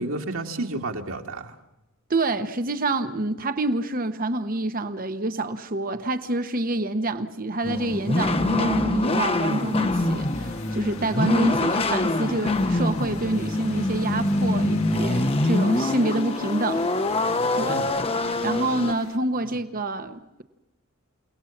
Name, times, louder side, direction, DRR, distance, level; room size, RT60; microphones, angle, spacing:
voice 1, 0.0-1.6 17.6-17.9 19.4-19.6, right 2 dB, 90° right, 2.3 m, -31 dB
voice 2, 2.1-16.8 17.5-17.8 18.4-20.4, right 2 dB, 40° right, 1.1 m, -27 dB
sound 1, 7.6-18.9, left 2 dB, 25° left, 1.1 m, -24 dB
sound 2, 8.5-19.2, left 5 dB, 75° left, 1.7 m, -44 dB
28.5 x 18.0 x 7.3 m
head